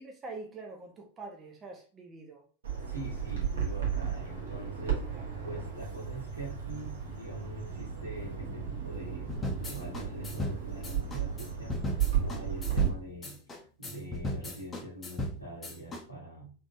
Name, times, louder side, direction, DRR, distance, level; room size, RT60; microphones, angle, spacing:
voice 1, 0.0-2.4 5.1-5.2, right 3 dB, 20° right, 2 dB, 0.7 m, -45 dB
Bird vocalization bird call bird song, 2.6-12.9, right 8 dB, 65° right, 1.4 m, -34 dB
voice 2, 2.8-16.5, right 1 dB, 90° right, -5 dB, 1.7 m, -44 dB
sound 1, 9.3-16.0, left 1 dB, 20° left, 0.8 m, -37 dB
3.8 x 3.5 x 2.5 m, 0.39 s
figure-of-eight pair, 90°, 0 cm